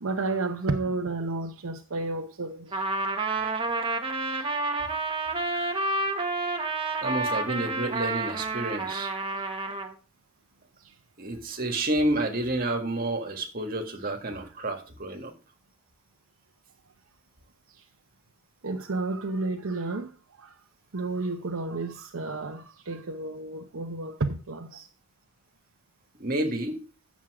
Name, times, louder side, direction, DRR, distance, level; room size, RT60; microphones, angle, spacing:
voice 1, 0.0-2.9 4.4-4.5 5.5-6.1 9.4-9.5 10.8-10.9 14.4-14.5 17.7-17.8 18.6-20.6 20.9-24.9, right 3 dB, 80° right, 0.8 m, -32 dB
Trumpet, 2.7-9.9, right 2 dB, 25° right, 1.2 m, -29 dB
voice 2, 7.0-9.1 11.2-15.3 26.2-26.8, right 1 dB, 45° right, 1.8 m, -29 dB
10.0 x 7.3 x 4.8 m
head